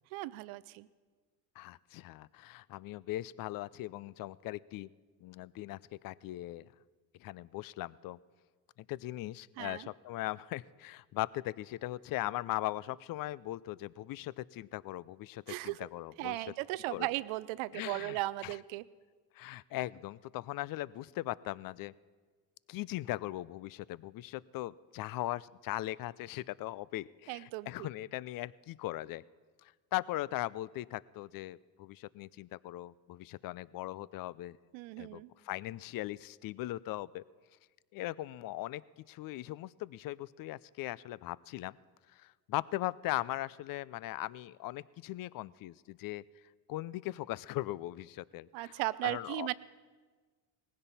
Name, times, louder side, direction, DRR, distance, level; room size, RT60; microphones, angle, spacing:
voice 1, 0.1-0.9 9.6-9.9 15.5-15.8 16.2-18.8 27.3-27.9 34.7-35.3 48.5-49.5, right 18 dB, 70° right, 18 dB, 0.7 m, -37 dB
voice 2, 1.6-4.9 5.2-6.7 7.2-8.2 8.9-16.5 16.9-17.1 17.7-18.6 19.3-21.9 22.7-29.2 29.6-34.6 35.0-37.2 37.9-41.8 42.1-46.2 46.7-49.5, left 16 dB, 45° left, 21 dB, 0.4 m, -39 dB
19.0 x 16.0 x 4.2 m, 1.4 s
supercardioid pair, 80°, 50 cm